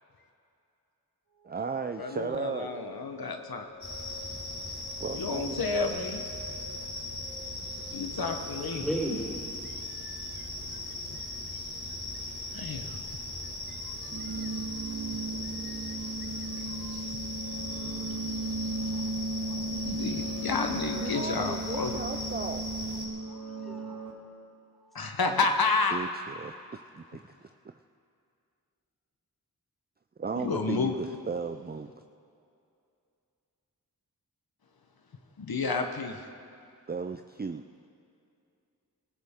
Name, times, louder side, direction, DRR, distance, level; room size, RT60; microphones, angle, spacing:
sound 1, 1.3-14.1, left 1 dB, 90° right, 4.4 m, -52 dB
voice 1, 1.4-2.7 5.0-5.6 21.0-23.0 25.9-27.2 27.6-27.7 30.2-31.9 36.9-37.6, right 5 dB, 25° right, 7 dB, 0.5 m, -36 dB
voice 2, 2.0-3.7 5.1-6.2 7.9-8.9 9.6-10.5 11.1-11.3 12.1-12.2 12.5-13.0 13.4-18.7 19.7-22.0 24.9-26.0 30.3-31.0 35.4-36.2, left 4 dB, 75° left, 5 dB, 1.1 m, -33 dB
sound 2, 3.8-23.1, left 1 dB, 35° left, 4.4 m, -38 dB
voice 3, 7.8-8.3 8.8-9.3 18.9-19.0 23.3-24.0 24.8-25.2, right 1 dB, ahead, -4 dB, 4.2 m, -36 dB
sound 3, 14.1-24.1, right 2 dB, 55° right, 2.6 m, -36 dB
23.0 x 14.5 x 3.7 m, 2.5 s
cardioid pair, 45°, 37 cm